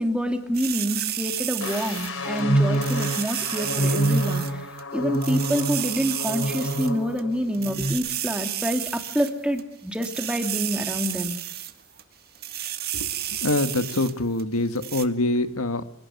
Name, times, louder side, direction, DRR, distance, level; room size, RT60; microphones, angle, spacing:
voice 1, 0.0-4.7 4.9-11.4, equal, 5° right, 4 dB, 2.8 m, -27 dB
sound 1, 0.5-2.4 2.7-4.5 4.8-4.9 5.1-6.9 7.2-7.3 7.5-9.6 9.9-11.7 12.0-12.1 12.4-14.1 14.4-14.5 14.8-15.1, right 12 dB, 45° right, 1.8 m, -31 dB
sound 2, 1.6-7.3 7.6-7.9, right 1 dB, 70° left, 4.5 m, -26 dB
voice 2, 13.4-15.8, left 2 dB, 85° left, 9 dB, 1.7 m, -25 dB
26.5 x 18.5 x 9.4 m, 0.72 s
head